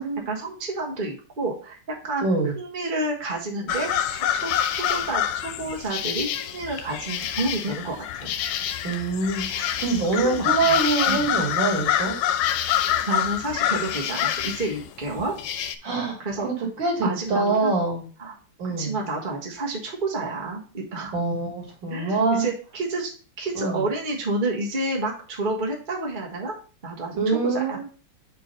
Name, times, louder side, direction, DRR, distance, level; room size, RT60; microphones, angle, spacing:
voice 1, 0.2-2.2 2.6-4.5 4.9-8.3 9.9-10.8 11.1-11.2 13.1-15.3 16.2-16.7 17.0-17.8 18.2-18.4 18.6-21.1 21.9-23.1 23.4-26.5 26.8-27.8, right 2 dB, 25° right, -1 dB, 1.3 m, -30 dB
voice 2, 2.2-2.5 8.8-12.2 15.8-18.1 18.6-19.0 21.1-22.5 23.6-23.8 27.2-27.8, right 3 dB, 65° right, 0 dB, 2.6 m, -25 dB
sound 1, 3.7-15.8, left 10 dB, 80° left, 1.4 m, -26 dB
4.8 x 4.6 x 5.3 m, 0.39 s
omnidirectional pair, 2.3 m